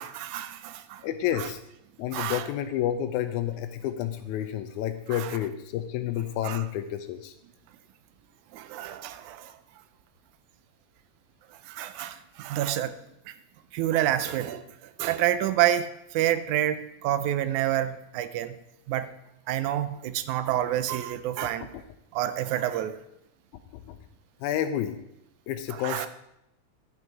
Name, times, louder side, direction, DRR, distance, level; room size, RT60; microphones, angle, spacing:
voice 1, 0.0-1.0 1.4-1.5 2.1-2.5 5.1-5.4 6.4-6.6 8.5-9.6 11.5-13.0 13.3-13.4 13.7-18.6 18.9-19.1 19.5-21.7 22.1-23.0 25.7-26.1, right 12 dB, 85° right, 12 dB, 2.0 m, -28 dB
voice 2, 1.0-1.6 2.0-7.3 23.7-24.0 24.4-25.0 25.5-26.1, left 11 dB, 85° left, 9 dB, 2.0 m, -30 dB
10.5 x 6.1 x 4.6 m, 0.84 s
omnidirectional pair, 3.4 m